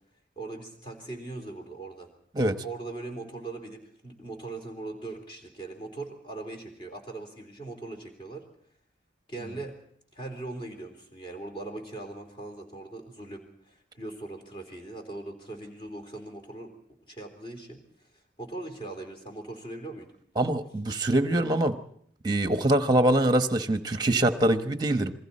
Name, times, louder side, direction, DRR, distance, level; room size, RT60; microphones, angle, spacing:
voice 1, 0.4-2.1 2.6-8.4 9.3-9.8 10.1-16.7 17.1-17.8 18.4-20.1, right 2 dB, 25° left, 3 dB, 3.7 m, -40 dB
voice 2, 20.4-21.8 22.2-25.1, right 1 dB, 20° right, 8 dB, 1.1 m, -24 dB
28.0 x 21.5 x 4.3 m, 0.67 s
head